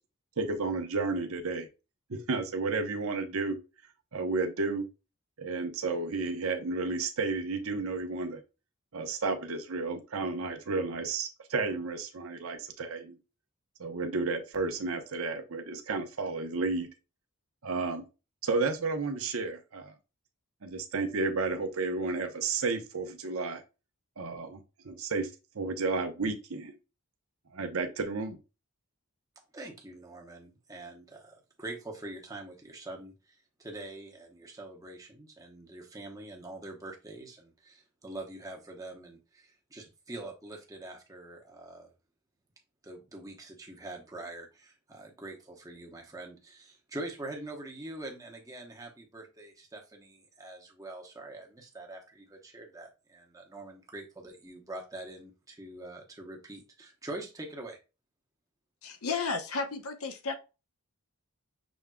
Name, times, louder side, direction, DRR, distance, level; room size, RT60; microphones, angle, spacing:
voice 1, 0.4-1.7 2.1-3.6 4.1-4.9 5.4-8.4 8.9-13.2 13.8-16.9 17.6-18.0 18.4-19.9 20.6-23.6 24.2-24.6 24.8-25.3 25.5-26.7 27.5-28.4, right 3 dB, 70° right, 0.8 m, -32 dB
voice 2, 29.5-41.9 42.8-57.8, right 2 dB, 15° right, 0.9 m, -44 dB
voice 3, 58.8-60.3, left 4 dB, 75° left, 0.8 m, -33 dB
6.1 x 3.5 x 2.2 m
head